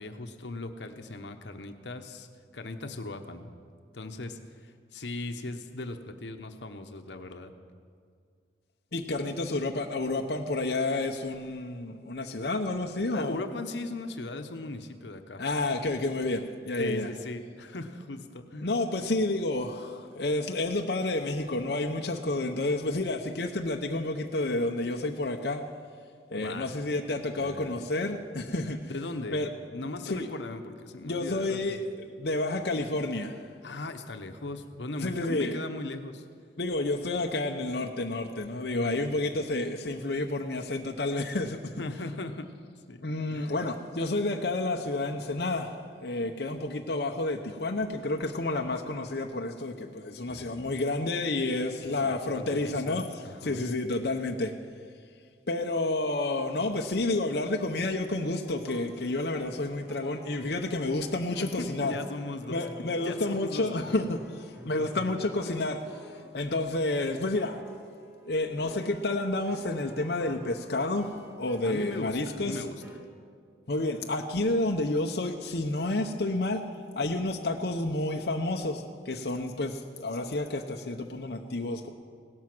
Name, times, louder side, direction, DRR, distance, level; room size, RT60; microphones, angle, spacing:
voice 1, 0.0-2.3 2.5-3.5 3.9-7.5 13.1-15.4 16.8-18.7 26.4-26.7 27.3-27.9 28.9-31.8 33.6-36.2 38.5-39.0 41.8-42.5 42.9-43.6 50.3-50.6 51.8-53.6 61.4-64.1 64.8-65.1 71.6-72.8, left 2 dB, 85° left, 7 dB, 1.0 m, -39 dB
voice 2, 8.9-13.4 15.4-17.1 18.6-25.6 26.3-28.9 29.3-29.5 30.1-30.3 31.0-33.5 35.0-35.6 36.6-41.6 43.0-54.5 55.5-61.9 62.5-66.0 66.3-67.6 68.3-72.6 73.7-76.6 77.0-81.9, left 2 dB, 65° left, 2 dB, 0.8 m, -30 dB
sound 1, 58.5-66.4 66.9-73.0, right 1 dB, 10° right, 1.6 m, -50 dB
17.0 x 12.5 x 6.1 m, 2.1 s
head